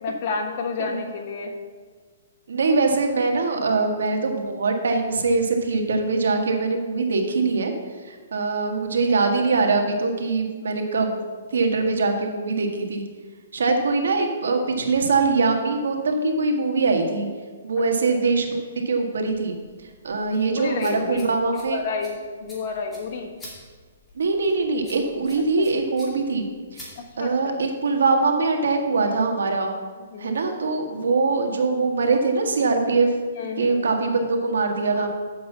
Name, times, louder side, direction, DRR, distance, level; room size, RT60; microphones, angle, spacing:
voice 1, 0.0-1.5 20.5-21.3 21.7-23.3 25.6-25.7 27.0-27.6 30.1-30.4 33.4-33.8 34.9-35.1, left 4 dB, 40° left, 2 dB, 1.3 m, -30 dB
voice 2, 2.5-7.7 8.0-11.2 11.5-13.0 13.5-17.3 17.6-18.6 18.8-19.5 20.0-21.8 24.1-26.5 26.7-26.9 27.2-29.8 30.2-33.1 33.4-35.1, right 3 dB, 85° right, 4 dB, 1.5 m, -22 dB
sound 1, 19.2-27.6, left 1 dB, 5° left, 2.2 m, -47 dB
7.4 x 5.7 x 7.0 m, 1.5 s
hypercardioid pair, 160°, 0 cm